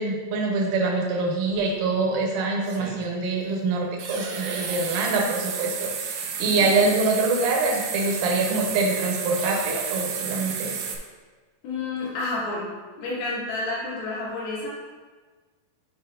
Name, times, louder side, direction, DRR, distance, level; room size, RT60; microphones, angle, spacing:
voice 1, 0.0-10.8, right 3 dB, 70° right, -1 dB, 2.2 m, -25 dB
sound 1, 1.5-1.6 2.6-3.0 4.0-11.0, right 6 dB, 85° right, 1.8 m, -32 dB
voice 2, 11.6-12.7 13.0-14.7, left 2 dB, 70° left, -6 dB, 3.4 m, -30 dB
9.6 x 4.9 x 2.6 m, 1.4 s
omnidirectional pair, 4.7 m